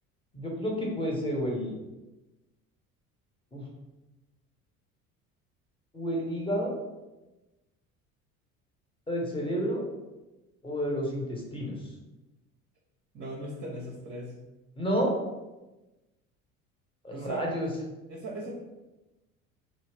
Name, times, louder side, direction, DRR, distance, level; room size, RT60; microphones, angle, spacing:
voice 1, 0.3-1.8 3.5-3.7 5.9-6.8 9.1-9.8 10.6-11.9 14.8-15.2 17.0-17.7, equal, 10° left, -1 dB, 0.8 m, -30 dB
voice 2, 13.1-14.3 17.1-17.4 18.1-18.6, right 1 dB, 25° right, -2 dB, 0.6 m, -38 dB
2.7 x 2.2 x 3.1 m, 1.1 s
hypercardioid pair, 65°, 43 cm